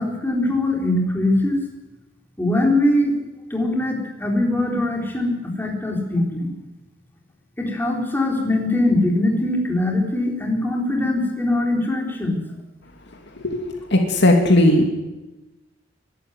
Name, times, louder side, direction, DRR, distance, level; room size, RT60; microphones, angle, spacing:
voice 1, 0.0-1.6 2.4-3.1 3.5-6.5 7.6-12.4, left 1 dB, 10° left, 0 dB, 4.2 m, -21 dB
voice 2, 13.9-14.9, left 1 dB, 60° left, 3 dB, 2.8 m, -16 dB
23.0 x 12.0 x 9.5 m, 1.0 s
head